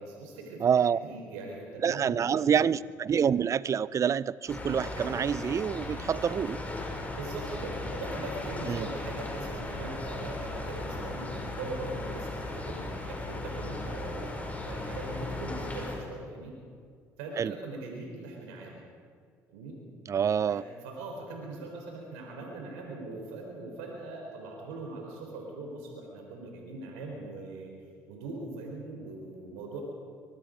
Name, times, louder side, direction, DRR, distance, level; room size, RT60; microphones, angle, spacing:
voice 1, 0.0-0.7 1.0-2.6 7.1-14.3 14.6-16.5 17.2-18.9 19.5-19.7 20.5-27.7 28.1-29.8, right 2 dB, 85° right, 0 dB, 3.9 m, -41 dB
voice 2, 0.6-1.0 1.8-6.6 8.7-8.9 17.4-17.5 20.1-20.6, right 7 dB, 45° right, 19 dB, 0.6 m, -27 dB
sound 1, 4.5-16.0, left 2 dB, 20° left, 5.9 m, -37 dB
24.0 x 22.0 x 5.1 m, 2.2 s
supercardioid pair, 70°, 8 cm